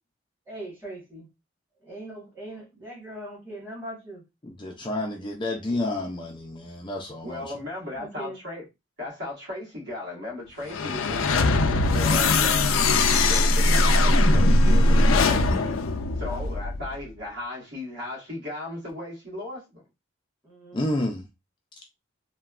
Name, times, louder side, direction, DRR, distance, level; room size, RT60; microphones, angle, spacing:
voice 1, 0.5-1.3 1.8-4.2 7.9-8.4 15.0-15.3 16.2-16.4 20.4-20.9, equal, 10° right, 1.2 m, -39 dB
voice 2, 4.4-7.4 20.7-21.2, left 1 dB, 25° left, 0.4 m, -30 dB
voice 3, 7.2-8.7 9.0-12.8 13.3-15.8 16.2-19.8, left 2 dB, 55° right, 1.4 m, -36 dB
sound 1, 10.6-16.9, left 2 dB, 85° left, 0.4 m, -20 dB
3.1 x 2.1 x 2.4 m
head